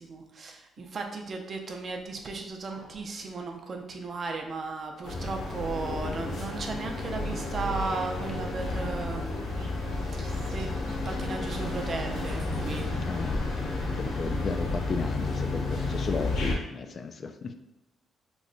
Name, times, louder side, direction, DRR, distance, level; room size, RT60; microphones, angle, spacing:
voice 1, 0.0-9.5 10.2-12.9 14.0-14.4, right 3 dB, 45° right, 3 dB, 0.5 m, -36 dB
sound 1, 2.0-3.5 3.9-4.0 4.3-4.4 5.0-5.9 6.4-7.5 7.8-8.5 9.6-12.9, equal, 85° right, 0.7 m, -46 dB
sound 2, 5.0-16.6, left 2 dB, 75° left, 0.8 m, -31 dB
voice 2, 13.1-13.5 14.0-17.5, left 4 dB, 45° left, 7 dB, 0.3 m, -34 dB
3.1 x 2.2 x 3.8 m, 0.96 s
cardioid pair, 90°, 0 cm